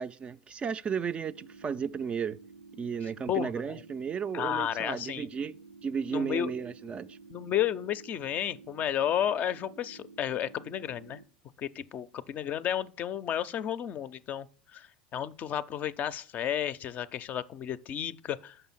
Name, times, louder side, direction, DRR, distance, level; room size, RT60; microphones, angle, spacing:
voice 1, 0.0-2.4 2.7-7.2, right 6 dB, 25° right, 0.3 m, -34 dB
sound 1, 1.2-11.2, right 4 dB, 90° right, 0.5 m, -52 dB
voice 2, 3.3-3.8 4.3-5.3 6.1-6.5 7.3-11.2 11.6-14.5 14.7-18.6, left 10 dB, 40° left, 0.4 m, -32 dB
6.7 x 5.4 x 5.7 m
figure-of-eight pair, 80°, 4 cm